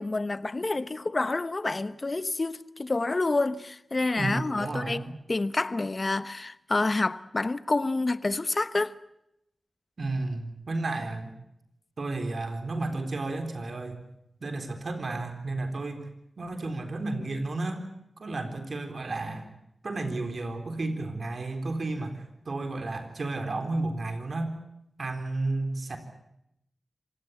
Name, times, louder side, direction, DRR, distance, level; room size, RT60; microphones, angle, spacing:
voice 1, 0.0-9.0, left 2 dB, 50° left, 1.0 m, -28 dB
voice 2, 4.2-5.1 10.0-11.3 12.0-14.0 14.4-16.1 16.4-17.8 18.2-19.5 19.8-24.6 25.0-26.0, right 2 dB, 70° right, 3.9 m, -32 dB
26.0 x 17.5 x 8.3 m
cardioid pair, 40°, 0 cm